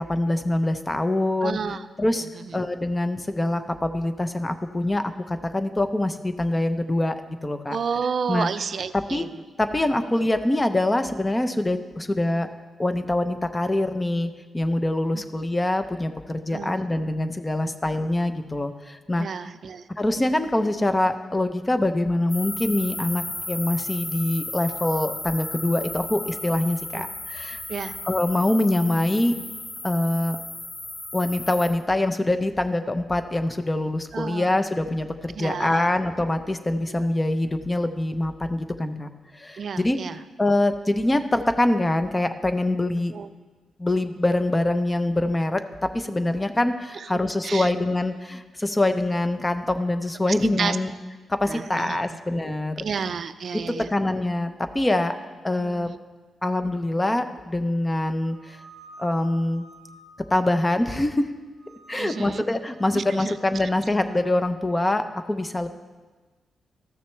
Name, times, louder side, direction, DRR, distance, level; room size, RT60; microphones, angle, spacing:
voice 1, 0.0-1.6 2.0-2.3 2.5-7.2 7.4-7.8 8.3-8.5 8.9-9.3 9.6-12.5 12.8-19.3 20.0-27.6 28.0-29.4 29.8-30.4 31.1-39.1 39.4-40.0 40.4-43.1 43.8-45.6 46.0-50.9 51.4-52.8 53.9-55.1 55.4-55.9 56.4-58.4 59.0-59.6 60.3-61.3 61.9-65.7, left 1 dB, 20° left, 9 dB, 0.7 m, -24 dB
voice 2, 1.4-1.9 2.3-2.6 7.7-9.3 15.1-15.2 16.5-16.7 17.7-17.8 19.2-19.8 26.9-27.1 27.7-28.0 34.1-34.5 35.3-35.9 36.9-37.1 39.6-40.2 43.1-43.3 46.9-47.1 47.4-47.7 50.6-50.8 51.5-52.1 52.8-53.9 55.6-56.0 61.9-62.4 62.9-63.4, right 6 dB, 60° right, 13 dB, 0.4 m, -31 dB
sound 1, 22.3-31.7, left 2 dB, 85° left, 2.3 m, -35 dB
sound 2, 58.3-61.2 61.6-62.4 62.7-64.3, right 1 dB, 20° right, 1.5 m, -51 dB
14.0 x 6.6 x 3.3 m, 1.3 s
cardioid pair, 60°, 0 cm